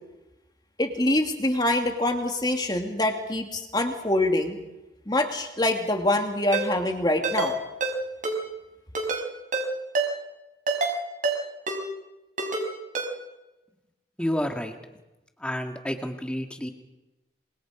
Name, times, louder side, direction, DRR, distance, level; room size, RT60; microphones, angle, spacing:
voice 1, 0.8-4.6 5.1-7.5, left 1 dB, 25° left, 4 dB, 2.7 m, -25 dB
Ringtone, 6.5-6.7 7.2-7.5 7.8-7.9 8.2-8.4 9.0-9.2 9.5-9.7 10.0-10.1 10.7-10.9 11.2-11.4 11.7-11.8 12.4-12.6 13.0-13.1, right 3 dB, 45° right, 5.2 m, -26 dB
voice 2, 14.2-14.8 15.4-16.7, equal, 5° left, 4 dB, 2.2 m, -29 dB
27.5 x 25.5 x 5.2 m, 1.0 s
head